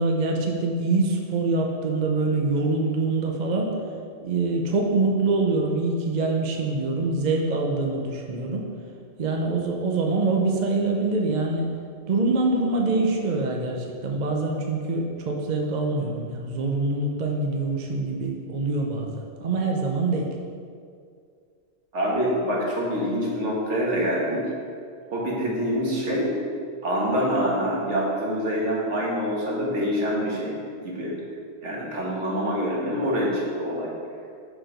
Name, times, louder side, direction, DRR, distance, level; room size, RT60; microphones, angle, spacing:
voice 1, 0.0-3.8 4.2-8.7 9.2-11.7 12.1-20.3, right 3 dB, 45° right, 1 dB, 0.7 m, -25 dB
voice 2, 21.9-24.4 25.1-26.3 26.8-31.1 31.6-33.9, equal, 75° right, -4 dB, 1.7 m, -26 dB
5.9 x 4.9 x 5.0 m, 2.3 s
omnidirectional pair, 1.2 m